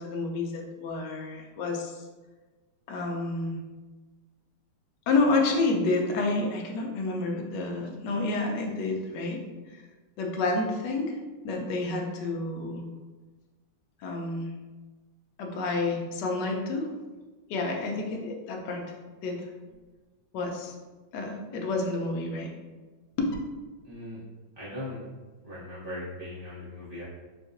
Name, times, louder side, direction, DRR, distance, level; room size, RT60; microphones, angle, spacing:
voice 1, 0.0-2.0 2.9-3.6 5.1-9.4 9.7-9.8 10.2-11.2 11.4-12.8 14.0-14.5 15.4-16.9 17.5-18.8 19.2-19.5 20.3-20.7 21.1-22.5 23.2-23.3, left 3 dB, 75° left, 1 dB, 1.1 m, -29 dB
voice 2, 23.9-24.2 24.6-25.0 25.4-27.0, left 1 dB, 40° left, -11 dB, 0.3 m, -39 dB
3.8 x 2.6 x 2.5 m, 1.3 s
omnidirectional pair, 2.3 m